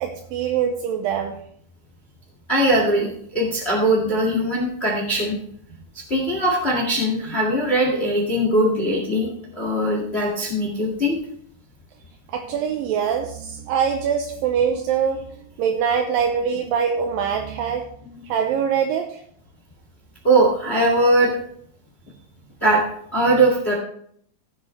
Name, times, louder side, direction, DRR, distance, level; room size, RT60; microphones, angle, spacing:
voice 1, 0.0-1.4 12.3-17.9 18.3-19.2, right 7 dB, 75° right, 3 dB, 2.3 m, -23 dB
voice 2, 2.5-5.4 6.1-11.2 18.0-18.2 20.2-21.4 22.6-22.8 23.1-23.7, right 1 dB, 25° left, -1 dB, 1.3 m, -20 dB
16.0 x 7.9 x 3.3 m, 0.65 s
omnidirectional pair, 4.5 m